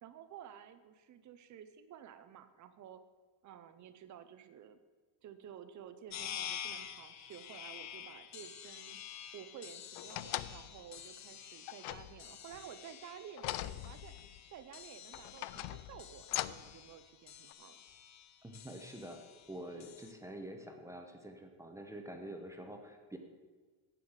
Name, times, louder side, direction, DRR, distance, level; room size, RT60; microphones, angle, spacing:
voice 1, 0.0-3.0 3.4-4.8 5.2-9.0 9.3-14.1 14.5-17.8, right 9 dB, 35° right, 11 dB, 0.7 m, -52 dB
sound 1, 6.1-20.1, left 10 dB, 35° left, 0.6 m, -49 dB
sound 2, 10.0-10.8 11.7-12.6 13.4-14.4 15.1-16.8 17.5-17.6, left 16 dB, 80° left, 0.6 m, -41 dB
voice 2, 18.4-23.2, right 1 dB, 5° right, 4 dB, 0.9 m, -47 dB
10.0 x 8.4 x 7.2 m, 1.4 s
cardioid pair, 175°, 49 cm